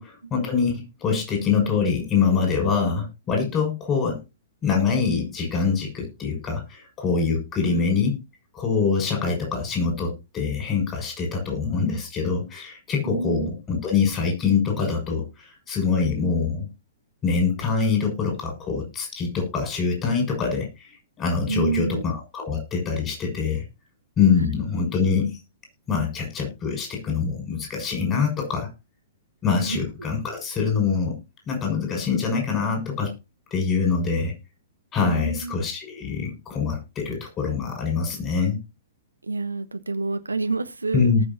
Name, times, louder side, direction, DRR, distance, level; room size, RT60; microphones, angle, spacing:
voice 1, 0.0-4.2 4.6-8.2 8.5-16.7 17.2-23.6 24.2-25.4 25.9-28.7 29.4-31.1 31.5-33.1 33.5-34.3 34.9-38.6 40.9-41.2, left 5 dB, 20° left, 6.4 m, -24 dB
voice 2, 13.0-13.5 21.5-22.0 24.4-24.5 29.6-29.8 35.0-35.6 39.2-41.1, right 4 dB, 80° right, 1.1 m, -28 dB
19.0 x 6.7 x 2.9 m
figure-of-eight pair, 110°, 0 cm